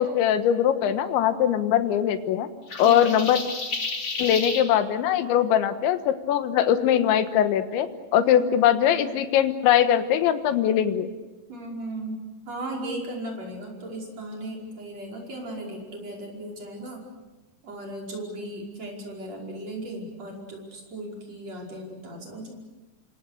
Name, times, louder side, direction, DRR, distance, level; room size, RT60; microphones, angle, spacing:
voice 1, 0.0-2.5 2.8-3.4 4.2-11.1, left 10 dB, 85° left, 9 dB, 3.7 m, -21 dB
sound 1, 2.7-4.6, left 3 dB, 30° left, 3.2 m, -31 dB
voice 2, 2.8-3.2 8.2-8.5 11.5-12.2 12.5-17.0 17.6-22.5, right 1 dB, 35° right, -1 dB, 6.2 m, -36 dB
28.0 x 25.5 x 6.6 m, 1.2 s
omnidirectional pair, 5.2 m